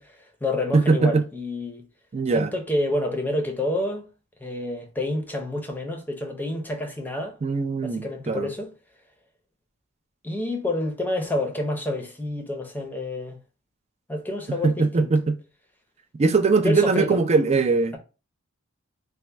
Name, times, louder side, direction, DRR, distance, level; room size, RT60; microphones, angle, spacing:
voice 1, 0.0-1.9 2.3-4.1 4.4-7.4 7.8-8.7 10.2-13.4 14.1-15.1 16.6-17.2, left 1 dB, 10° left, 0.6 m, -28 dB
voice 2, 0.7-1.2 2.1-2.5 7.4-8.5 14.6-15.3 16.2-18.0, right 4 dB, 30° right, 0.4 m, -21 dB
4.3 x 2.2 x 3.3 m
head